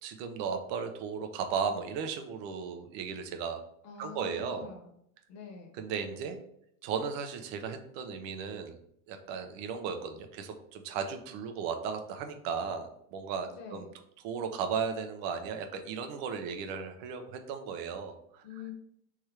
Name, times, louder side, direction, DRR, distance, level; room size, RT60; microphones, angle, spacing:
voice 1, 0.0-3.6 4.0-4.7 5.8-6.4 6.8-8.8 9.1-13.8 14.2-18.4, right 6 dB, 60° right, 6 dB, 0.8 m, -35 dB
voice 2, 3.8-4.9 5.3-5.7 13.5-13.9 18.4-18.7, left 6 dB, 40° left, 3 dB, 1.2 m, -46 dB
3.5 x 3.2 x 4.5 m, 0.73 s
supercardioid pair, 135°, 42 cm